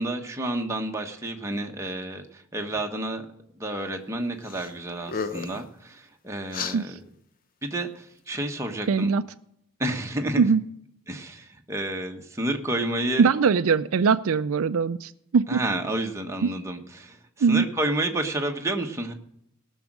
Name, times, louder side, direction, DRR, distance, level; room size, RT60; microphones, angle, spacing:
voice 1, 0.0-3.2 3.6-7.0 7.6-9.1 9.8-10.5 11.1-13.3 15.5-19.1, right 1 dB, 15° right, 2 dB, 1.1 m, -30 dB
sound 1, 4.4-4.7 5.0-5.6 6.5-6.8, left 5 dB, 40° left, 0.6 m, -32 dB
voice 2, 8.9-9.2 10.4-10.6 13.2-15.6 16.4-16.5 17.4-17.7, right 5 dB, 70° right, 12 dB, 0.4 m, -21 dB
17.5 x 6.4 x 6.1 m, 0.74 s
head